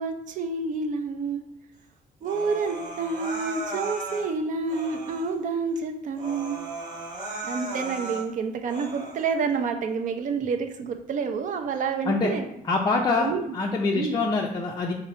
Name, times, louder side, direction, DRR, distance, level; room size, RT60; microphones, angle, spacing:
voice 1, 0.0-1.4 2.2-6.6 7.4-12.4 13.2-13.5 13.9-14.2, right 5 dB, 50° right, 6 dB, 0.5 m, -28 dB
Human voice, 2.2-4.3 4.7-5.3 5.8-5.9 6.1-8.3 8.7-9.3, right 2 dB, 25° right, 1.1 m, -36 dB
voice 2, 12.6-14.9, left 3 dB, 25° left, -1 dB, 0.4 m, -25 dB
5.2 x 2.0 x 4.1 m, 0.77 s
cardioid pair, 115°, 17 cm